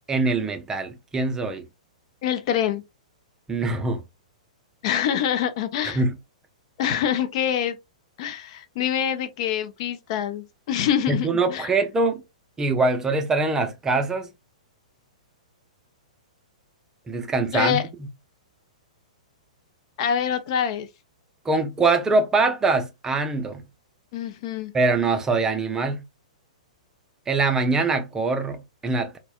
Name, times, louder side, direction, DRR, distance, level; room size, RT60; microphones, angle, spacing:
voice 1, 0.1-1.6 3.5-4.0 5.8-6.1 11.1-12.2 12.6-14.3 17.1-17.8 21.5-23.6 24.7-26.0 27.3-29.2, right 3 dB, 15° right, 0.5 m, -23 dB
voice 2, 2.2-2.8 4.8-6.0 6.8-7.8 8.2-11.7 17.5-17.8 20.0-20.9 24.1-24.7, left 9 dB, 50° left, 0.5 m, -25 dB
4.0 x 2.2 x 2.3 m
hypercardioid pair, 115°, 4 cm